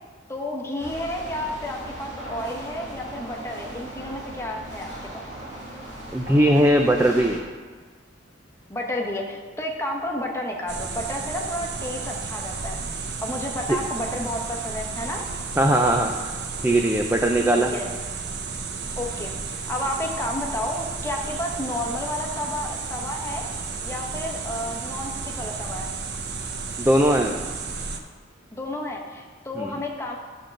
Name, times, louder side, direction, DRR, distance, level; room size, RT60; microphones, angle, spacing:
voice 1, 0.3-5.3 8.7-12.8 13.2-15.2 17.6-17.9 19.0-19.3 19.7-23.5 23.8-25.9 28.5-30.2, left 1 dB, 15° left, 0 dB, 1.1 m, -31 dB
sound 1, 0.8-7.4, right 1 dB, 40° right, 2.2 m, -38 dB
voice 2, 6.1-7.4 15.6-16.3 16.6-17.7 26.8-27.3 29.6-29.7, right 1 dB, 10° right, 3 dB, 0.4 m, -19 dB
sound 2, 10.7-28.0, right 4 dB, 60° right, 0.7 m, -33 dB
11.0 x 3.8 x 6.5 m, 1.5 s
head